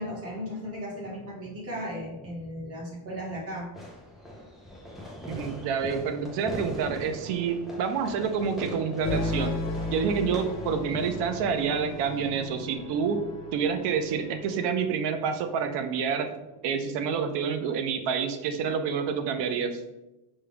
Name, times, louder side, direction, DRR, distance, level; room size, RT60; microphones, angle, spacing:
voice 1, 0.0-3.7, equal, 35° right, -3 dB, 1.0 m, -36 dB
Fireworks, 3.7-12.8, equal, ahead, 0.4 m, -41 dB
voice 2, 5.3-9.5 9.9-16.3 16.6-19.8, right 6 dB, 85° right, 7 dB, 0.6 m, -28 dB
sound 1, 9.0-15.8, left 2 dB, 80° left, 1.0 m, -35 dB
5.3 x 2.2 x 3.4 m, 0.97 s
cardioid pair, 175°, 41 cm